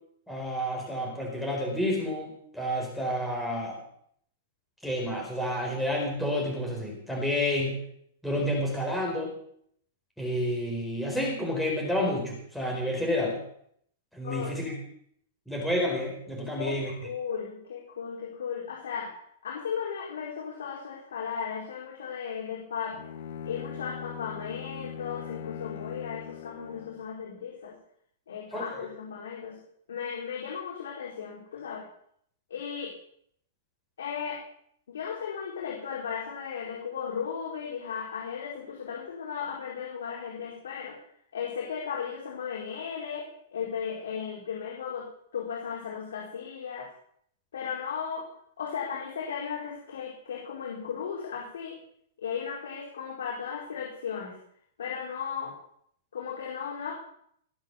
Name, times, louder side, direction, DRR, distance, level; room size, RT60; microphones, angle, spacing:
voice 1, 0.3-3.8 4.8-7.8 8.2-9.3 10.2-13.4 14.1-14.8 15.5-16.9 28.5-28.7, left 1 dB, ahead, -2 dB, 4.6 m, -30 dB
voice 2, 16.6-19.1 19.4-23.0 23.4-27.7 28.3-29.6 29.9-31.8 32.5-32.9 34.0-34.4 34.9-41.0 41.3-43.3 43.5-45.1 45.3-46.9 47.5-48.3 48.6-51.7 52.2-54.4 54.8-55.5 56.1-57.0, left 7 dB, 90° left, -2 dB, 4.4 m, -36 dB
Bowed string instrument, 22.9-27.1, left 8 dB, 65° left, 1.9 m, -40 dB
19.5 x 7.7 x 7.3 m, 0.67 s
hypercardioid pair, 150°, 0 cm